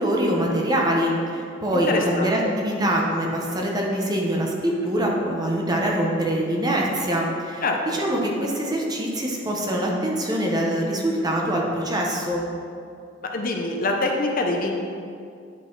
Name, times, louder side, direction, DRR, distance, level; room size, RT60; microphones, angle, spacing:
voice 1, 0.0-12.4, right 1 dB, 20° right, -2 dB, 0.9 m, -24 dB
voice 2, 1.7-2.3 7.6-7.8 13.3-14.7, left 2 dB, 45° left, 1 dB, 0.7 m, -24 dB
10.0 x 4.0 x 4.7 m, 2.4 s
head